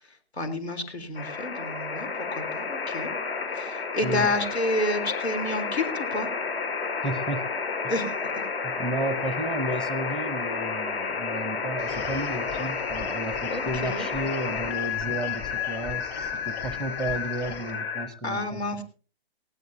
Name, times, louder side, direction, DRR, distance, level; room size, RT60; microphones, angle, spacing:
voice 1, 0.4-3.1 3.5-6.3 7.9-8.0 13.5-14.1 18.2-18.8, left 2 dB, 90° left, 7 dB, 3.8 m, -29 dB
sound 1, 1.1-18.1, left 5 dB, 65° left, 5.8 m, -31 dB
voice 2, 4.0-4.3 7.0-7.5 7.8-7.9 8.6-18.6, right 1 dB, ahead, 14 dB, 0.8 m, -33 dB
sound 2, 11.8-17.7, left 7 dB, 40° left, 4.3 m, -43 dB
19.5 x 16.5 x 2.8 m, 0.37 s
hypercardioid pair, 135°, 31 cm